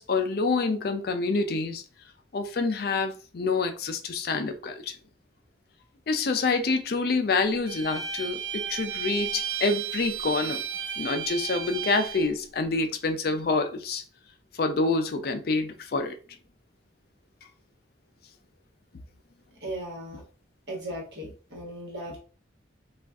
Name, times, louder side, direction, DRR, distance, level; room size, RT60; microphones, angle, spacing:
voice 1, 0.0-1.8 2.3-5.0 6.1-10.6 11.0-14.0 14.5-16.2, left 3 dB, 55° left, 0.4 m, -27 dB
Bowed string instrument, 7.7-12.3, right 7 dB, 85° right, 0.7 m, -33 dB
voice 2, 19.6-20.2 20.7-22.2, right 1 dB, 65° right, 1.3 m, -37 dB
2.4 x 2.4 x 3.4 m
head